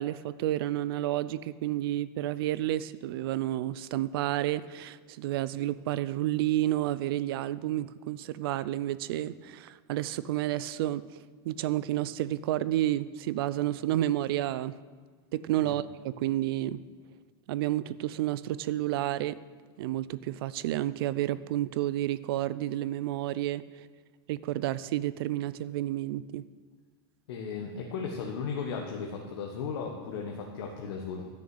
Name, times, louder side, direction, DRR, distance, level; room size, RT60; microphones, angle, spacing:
voice 1, 0.0-11.2 11.4-14.8 15.3-16.8 17.5-19.4 19.8-23.6 24.3-26.4, right 14 dB, 60° right, 17 dB, 0.5 m, -30 dB
voice 2, 27.3-31.3, left 5 dB, 65° left, 0 dB, 1.4 m, -36 dB
12.5 x 6.5 x 7.8 m, 1.4 s
supercardioid pair, 165°, 14 cm